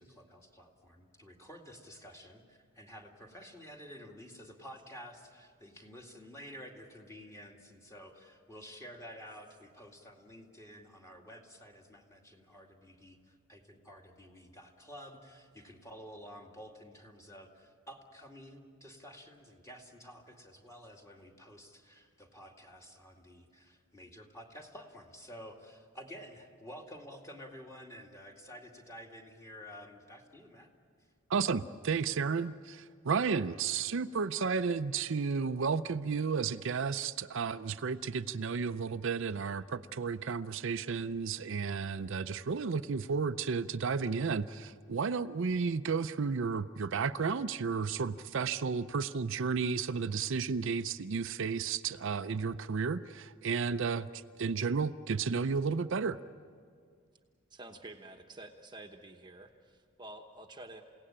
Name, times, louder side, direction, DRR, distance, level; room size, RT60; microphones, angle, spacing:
voice 1, 0.0-30.7, equal, 15° left, 1 dB, 2.3 m, -51 dB
voice 2, 31.3-56.2, right 5 dB, 65° right, 10 dB, 0.5 m, -32 dB
voice 3, 57.5-60.8, right 2 dB, 20° right, 4 dB, 1.1 m, -49 dB
29.0 x 17.5 x 8.8 m, 2.1 s
head